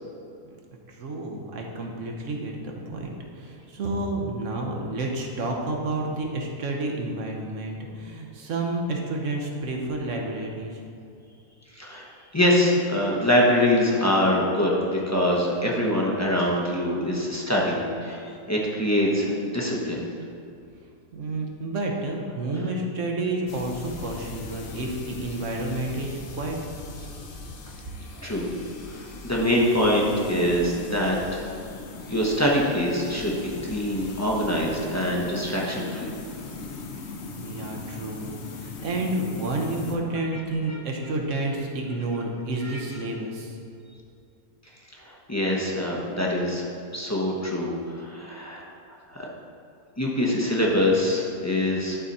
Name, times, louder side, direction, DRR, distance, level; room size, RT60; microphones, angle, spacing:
voice 1, 0.9-10.8 21.1-26.6 37.3-43.6, right 2 dB, 60° right, 1 dB, 1.2 m, -30 dB
voice 2, 11.7-12.1 12.3-20.1 28.2-28.5 28.9-31.4 32.1-33.3 33.6-36.1 40.7-40.8 42.6-42.8 45.0-46.7 46.9-48.7 49.1-49.2 50.0-52.0, left 1 dB, 15° left, -4 dB, 0.7 m, -24 dB
sound 1, 23.5-40.0, left 3 dB, 55° left, 0.9 m, -39 dB
11.5 x 4.0 x 4.2 m, 2.6 s
omnidirectional pair, 1.6 m